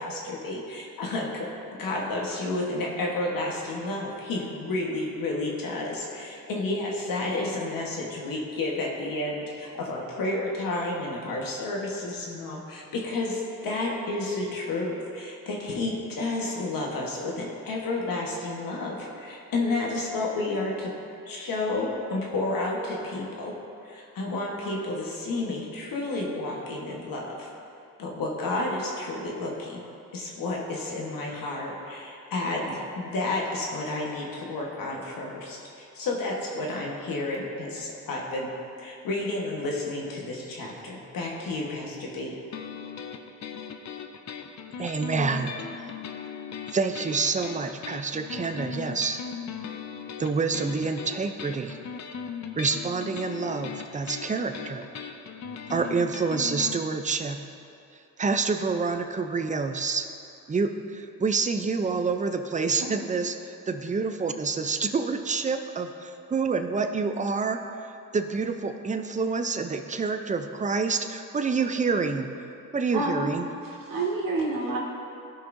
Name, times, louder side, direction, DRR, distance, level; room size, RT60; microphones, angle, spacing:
voice 1, 0.0-1.5 1.8-20.9 21.3-23.5 23.8-27.5 28.0-29.8 30.1-42.4, left 2 dB, 85° left, -2 dB, 1.4 m, -31 dB
sound 1, 42.5-56.8, left 6 dB, 60° left, 0.6 m, -38 dB
voice 2, 44.8-45.5 46.7-49.2 50.2-51.8 52.6-54.9 55.7-57.4 58.2-60.1 60.5-63.4 63.7-72.3 72.7-73.4, right 4 dB, 25° right, 6 dB, 0.5 m, -27 dB
voice 3, 72.9-73.3 73.6-74.8, right 2 dB, 85° right, -4 dB, 1.8 m, -28 dB
14.0 x 5.5 x 2.6 m, 2.7 s
cardioid pair, 85°, 33 cm